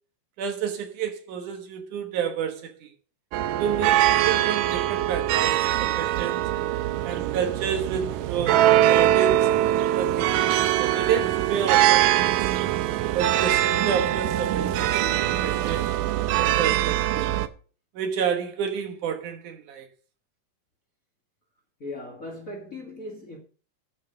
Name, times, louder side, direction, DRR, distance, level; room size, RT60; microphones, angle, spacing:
voice 1, 0.4-2.9 3.6-6.5 7.0-9.5 9.9-10.5 10.8-12.5 13.1-15.9 16.3-17.3 17.9-19.9, right 8 dB, 70° right, 2.7 m, -30 dB
sound 1, 3.3-17.5, right 13 dB, 85° right, 2.3 m, -22 dB
voice 2, 21.8-23.4, left 2 dB, 30° left, 1.8 m, -38 dB
12.0 x 6.0 x 5.6 m
omnidirectional pair, 3.7 m